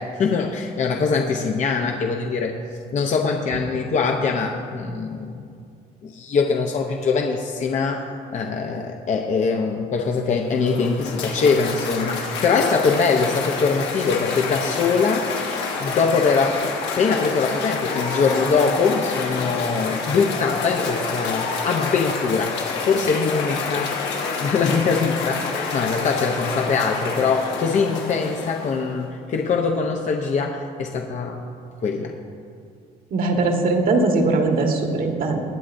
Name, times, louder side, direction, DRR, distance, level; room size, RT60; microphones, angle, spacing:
voice 1, 0.0-2.6 2.9-5.4 6.0-24.0 24.4-31.5 31.8-32.2, left 5 dB, 45° left, 2 dB, 0.8 m, -22 dB
Cheering / Applause, 10.4-29.0, left 4 dB, 85° left, 2.1 m, -28 dB
voice 2, 33.1-35.4, right 3 dB, 60° right, 2 dB, 1.6 m, -20 dB
20.5 x 8.7 x 2.6 m, 2.4 s
cardioid pair, 110°, 17 cm